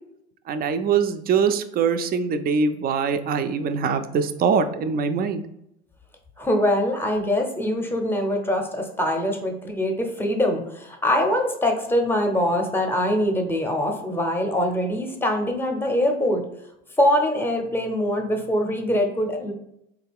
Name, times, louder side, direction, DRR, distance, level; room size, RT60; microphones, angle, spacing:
voice 1, 0.5-5.4, right 6 dB, 30° right, 9 dB, 0.4 m, -23 dB
voice 2, 6.4-16.4 17.0-19.5, left 1 dB, 5° left, 3 dB, 0.6 m, -23 dB
3.8 x 2.3 x 3.4 m, 0.79 s
supercardioid pair, 95°, 31 cm